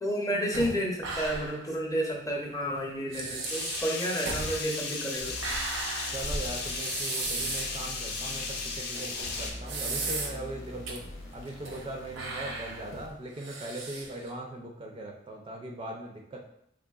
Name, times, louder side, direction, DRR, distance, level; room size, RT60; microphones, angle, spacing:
voice 1, 0.0-5.4, equal, 20° left, -1 dB, 0.6 m, -31 dB
sound 1, 0.5-1.7 2.0-2.1 2.7-2.8 3.1-7.8 8.2-8.3 8.9-10.5 10.9-11.0 11.4-11.9 12.2-14.3, right 3 dB, 85° right, 0.7 m, -36 dB
sound 2, 3.4-9.5, left 3 dB, 60° left, 0.6 m, -35 dB
sound 3, 5.2-13.2, equal, 90° left, 0.8 m, -45 dB
voice 2, 6.1-11.0 11.3-16.4, right 1 dB, 25° right, 0 dB, 0.4 m, -40 dB
3.6 x 3.3 x 2.3 m, 0.72 s
head